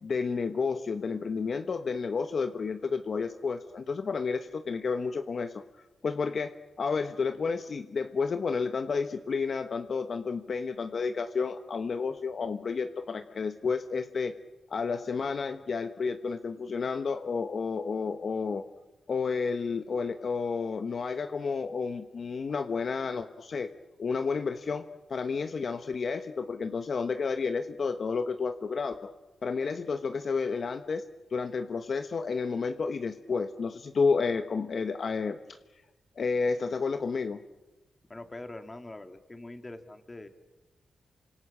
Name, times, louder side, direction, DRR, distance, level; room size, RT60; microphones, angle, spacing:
voice 1, 0.0-5.6 6.0-14.3 14.7-18.7 19.1-23.7 24.0-29.1 29.4-31.0 31.3-35.6 36.2-37.4, left 5 dB, 55° left, 8 dB, 1.3 m, -31 dB
voice 2, 38.1-40.3, left 2 dB, 20° left, 7 dB, 2.8 m, -43 dB
29.0 x 26.0 x 7.5 m, 1.1 s
cardioid pair, 95°, 0 cm